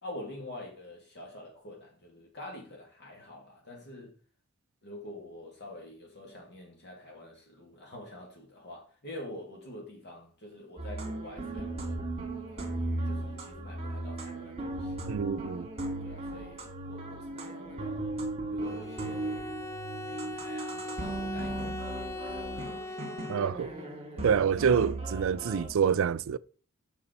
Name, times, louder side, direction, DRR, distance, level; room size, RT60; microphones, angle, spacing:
voice 1, 0.0-4.1 4.8-12.0 12.5-12.8 13.0-14.9 16.0-18.1 18.5-19.5 20.1-23.1 23.4-24.3 24.6-24.8, left 1 dB, 55° left, 2.4 m, -46 dB
sound 1, 10.8-25.7, right 2 dB, 30° right, 2.2 m, -37 dB
voice 2, 15.1-15.7 23.3-23.7 24.2-26.4, right 7 dB, 65° right, 0.4 m, -27 dB
Bowed string instrument, 18.6-23.9, left 2 dB, 15° left, 0.7 m, -40 dB
7.0 x 6.2 x 5.3 m
head